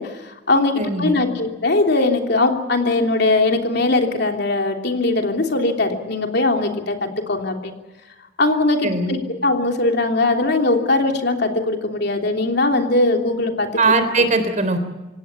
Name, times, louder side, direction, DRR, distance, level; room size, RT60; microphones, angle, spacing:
voice 1, 0.0-7.0 7.3-7.7 8.4-13.9, left 2 dB, 60° left, 3 dB, 3.2 m, -20 dB
voice 2, 0.8-1.2 8.8-9.2 13.8-14.8, right 3 dB, 40° right, 10 dB, 3.4 m, -19 dB
26.5 x 17.0 x 8.6 m, 1.1 s
head